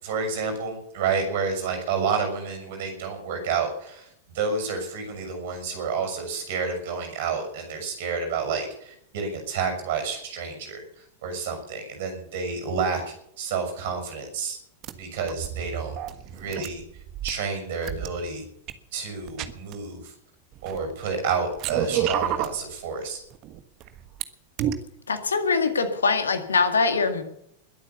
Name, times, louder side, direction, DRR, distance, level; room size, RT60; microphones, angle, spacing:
voice 1, 0.0-4.1 4.3-10.8 11.2-14.6 15.0-16.0 16.3-16.8 17.2-18.4 18.9-20.1 20.6-23.2, right 5 dB, 55° right, 5 dB, 6.5 m, -29 dB
sound 1, 14.8-14.9 15.3-17.3 17.8-18.1 18.7-18.8 19.3-19.7 20.5-21.1 21.5-22.6 23.3-24.2 24.6-24.7, right 11 dB, 40° right, 1.4 m, -30 dB
voice 2, 25.1-27.2, left 4 dB, 70° left, 8 dB, 2.0 m, -23 dB
21.5 x 8.7 x 7.0 m, 0.72 s
figure-of-eight pair, 90°, 0 cm